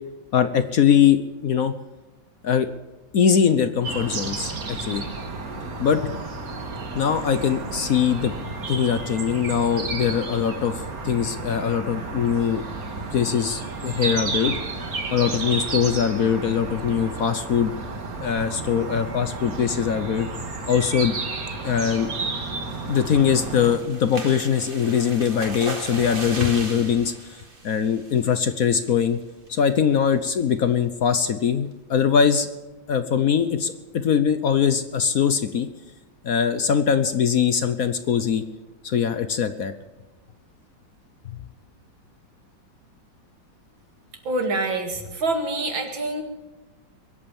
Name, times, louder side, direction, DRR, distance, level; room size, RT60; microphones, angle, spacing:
voice 1, 0.3-1.7 2.4-2.7 3.1-5.0 5.8-6.1 6.9-8.3 8.6-12.6 13.1-14.5 15.1-17.7 18.2-20.3 20.7-21.2 21.6-22.1 22.9-29.2 29.5-32.5 32.9-35.7 36.2-38.4 38.8-39.7 41.3-41.4, left 7 dB, 55° left, 11 dB, 1.1 m, -22 dB
sound 1, 3.8-23.8, right 3 dB, 50° right, 2.1 m, -32 dB
sound 2, 22.7-28.5 28.9-29.1 29.5-29.6 29.9-30.2, right 2 dB, 30° right, 2.3 m, -37 dB
voice 2, 44.2-46.2, right 2 dB, 80° right, 4 dB, 3.1 m, -26 dB
22.0 x 8.6 x 7.1 m, 1.1 s
omnidirectional pair, 2.1 m